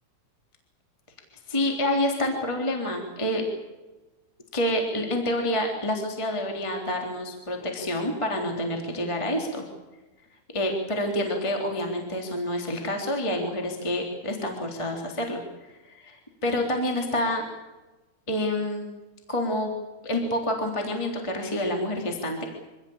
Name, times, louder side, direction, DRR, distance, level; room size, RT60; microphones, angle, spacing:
voice 1, 1.5-3.4 4.5-9.6 10.5-15.4 15.7-17.4 18.3-18.9 19.3-19.7 20.0-22.4, left 1 dB, 10° left, 2 dB, 3.0 m, -28 dB
26.0 x 16.5 x 8.8 m, 1.1 s
omnidirectional pair, 4.6 m